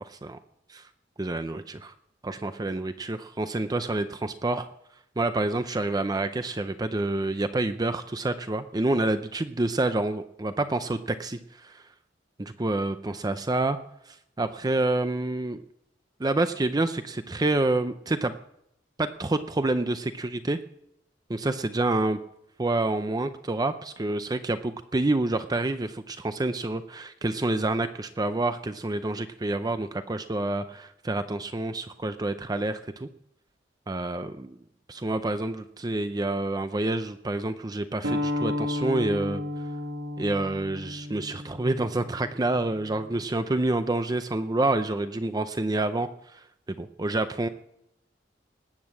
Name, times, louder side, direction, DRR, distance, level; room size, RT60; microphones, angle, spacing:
voice 1, 1.2-1.9 2.2-4.7 5.2-11.8 12.4-13.8 14.1-15.6 16.2-18.3 19.0-20.6 21.3-22.2 22.6-33.1 33.9-34.5 34.9-39.4 40.2-46.4 46.8-47.5, right 2 dB, 20° right, 10 dB, 0.5 m, -28 dB
sound 1, 38.0-43.2, left 1 dB, 90° right, 1.5 m, -33 dB
19.0 x 8.5 x 7.4 m, 0.78 s
head